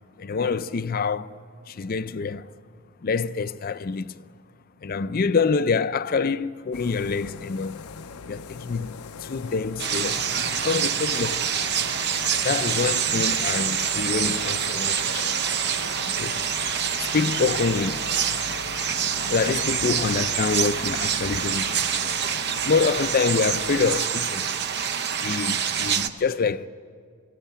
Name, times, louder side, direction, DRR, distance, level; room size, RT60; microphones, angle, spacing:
voice 1, 0.2-1.3 1.7-2.5 3.0-4.2 4.8-7.8 8.3-11.5 12.4-15.3 16.1-16.4 17.0-18.0 19.2-21.9 22.6-24.5 25.2-26.7, left 5 dB, 40° left, 0.5 m, -26 dB
sound 1, 6.7-24.1, left 5 dB, 85° left, 0.6 m, -40 dB
sound 2, 9.8-26.1, right 8 dB, 50° right, 0.8 m, -26 dB
23.0 x 17.5 x 8.2 m
head